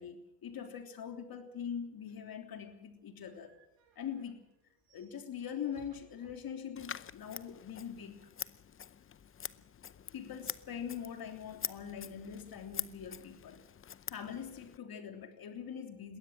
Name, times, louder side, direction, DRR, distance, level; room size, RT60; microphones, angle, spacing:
voice 1, 0.0-3.5 3.9-4.4 4.9-8.3 9.5-9.6 10.1-13.6 14.1-16.2, left 8 dB, 50° left, 6 dB, 3.4 m, -43 dB
sound 1, 2.1-7.0, right 6 dB, 75° right, 6.5 m, -66 dB
Scissors, 6.8-14.8, left 8 dB, 30° left, 0.7 m, -45 dB
21.5 x 17.0 x 7.6 m, 0.82 s
cardioid pair, 110°, 46 cm